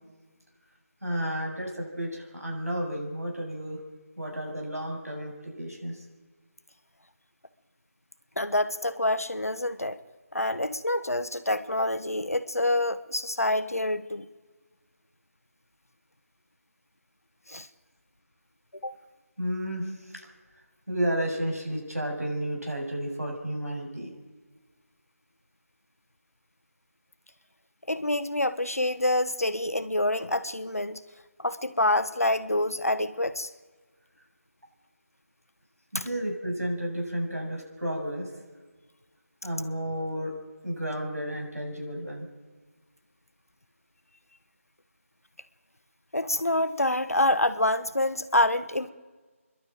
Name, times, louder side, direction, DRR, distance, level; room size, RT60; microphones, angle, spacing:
voice 1, 1.0-3.8 4.2-6.0 19.4-20.2 20.9-24.1 35.9-38.3 39.4-40.3 40.6-42.3, equal, 85° right, 1 dB, 7.5 m, -32 dB
voice 2, 8.4-10.0 10.3-14.2 17.5-17.7 18.8-18.9 27.9-31.0 31.4-33.5 35.9-36.0 46.1-48.9, left 1 dB, 75° left, 12 dB, 1.5 m, -27 dB
28.0 x 12.0 x 9.2 m, 1.3 s
figure-of-eight pair, 165°, 8 cm